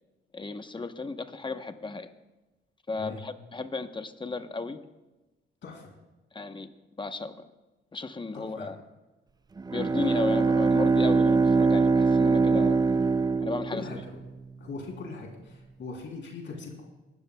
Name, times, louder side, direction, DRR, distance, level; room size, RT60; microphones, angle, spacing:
voice 1, 0.3-2.1 2.9-4.8 6.3-6.7 7.0-7.3 7.9-8.8 9.7-12.8 13.4-13.8, left 3 dB, 25° left, 9 dB, 0.9 m, -34 dB
voice 2, 8.3-8.7 13.7-14.0 14.6-16.8, left 4 dB, 65° left, 0 dB, 3.2 m, -40 dB
Bowed string instrument, 9.6-14.3, right 4 dB, 20° right, 0.4 m, -23 dB
20.0 x 13.0 x 2.2 m, 1.1 s
cardioid pair, 90°, 21 cm